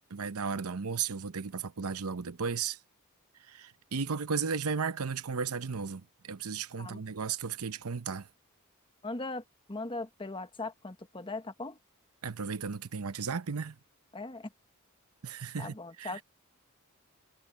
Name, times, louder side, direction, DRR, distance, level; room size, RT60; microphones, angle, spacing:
voice 1, 0.1-2.8 3.5-8.3 12.2-13.8 15.2-16.2, right 5 dB, 85° right, 0.8 m, -35 dB
voice 2, 9.0-9.4 9.7-11.8 14.1-14.5 15.6-16.2, left 2 dB, 25° left, 1.1 m, -39 dB
head